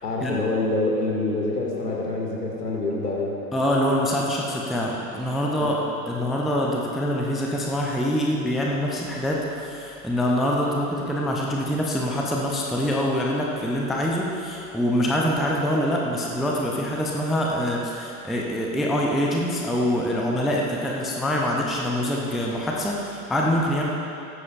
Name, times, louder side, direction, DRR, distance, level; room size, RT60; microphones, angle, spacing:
voice 1, 0.0-3.4 5.6-5.7, left 2 dB, 80° left, -2 dB, 2.5 m, -26 dB
voice 2, 3.5-5.7 6.1-23.9, equal, ahead, -2 dB, 0.3 m, -25 dB
16.0 x 13.0 x 2.6 m, 2.7 s
figure-of-eight pair, 95°, 46 cm